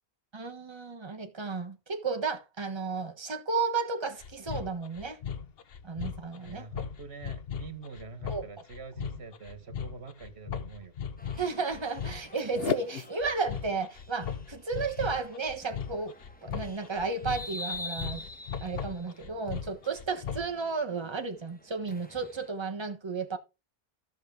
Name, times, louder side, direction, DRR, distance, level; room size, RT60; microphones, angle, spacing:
voice 1, 0.3-5.2 5.8-6.7 8.3-8.4 11.4-16.1 16.4-18.2 18.6-23.4, right 4 dB, 25° right, 1.2 m, -33 dB
sound 1, 4.2-20.6, left 7 dB, 65° left, 1.1 m, -37 dB
voice 2, 6.4-10.9, right 4 dB, 80° right, 1.7 m, -45 dB
sound 2, 11.2-22.5, left 2 dB, 10° left, 1.2 m, -47 dB
14.0 x 6.3 x 3.6 m
omnidirectional pair, 1.1 m